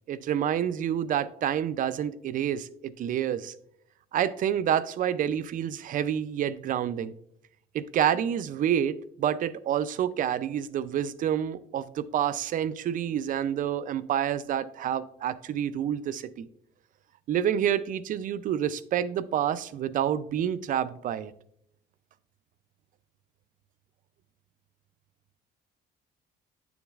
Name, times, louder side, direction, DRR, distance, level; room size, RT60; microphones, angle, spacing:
voice 1, 0.1-3.5 4.1-7.1 7.7-16.5 17.3-21.3, right 9 dB, 50° right, 16 dB, 0.4 m, -28 dB
8.8 x 7.1 x 2.4 m, 0.69 s
cardioid pair, 110°, 17 cm